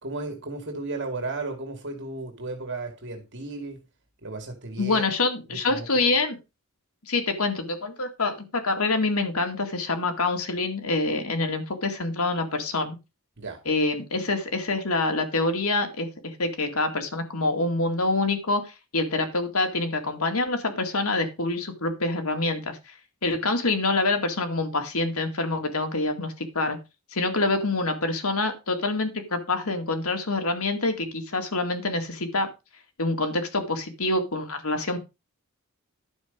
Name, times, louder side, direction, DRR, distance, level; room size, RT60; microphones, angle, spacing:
voice 1, 0.0-3.8 4.2-5.1 5.7-5.9 13.4-13.6, right 3 dB, 60° right, 5 dB, 2.3 m, -34 dB
voice 2, 4.8-6.4 7.1-13.0 13.7-22.9 23.2-26.8 27.1-32.5 33.0-35.0, left 2 dB, 75° left, 5 dB, 2.2 m, -26 dB
11.5 x 6.0 x 5.2 m, 0.27 s
head